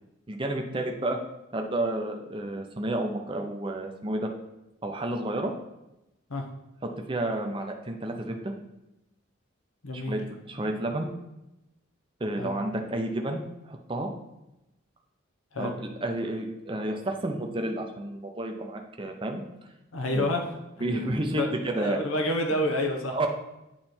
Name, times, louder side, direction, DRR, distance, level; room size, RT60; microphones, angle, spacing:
voice 1, 0.3-1.2 1.5-4.3 4.8-5.5 6.8-8.5 9.9-11.1 12.2-14.1 15.6-19.4 20.1-20.2 20.8-22.0 23.1-23.3, right 1 dB, 25° right, 3 dB, 0.6 m, -31 dB
voice 2, 9.8-10.2 12.4-12.5 15.5-15.7 19.9-20.5 20.8-20.9 21.3-23.2, left 1 dB, 90° left, 3 dB, 1.0 m, -28 dB
8.8 x 3.3 x 4.3 m, 0.92 s
head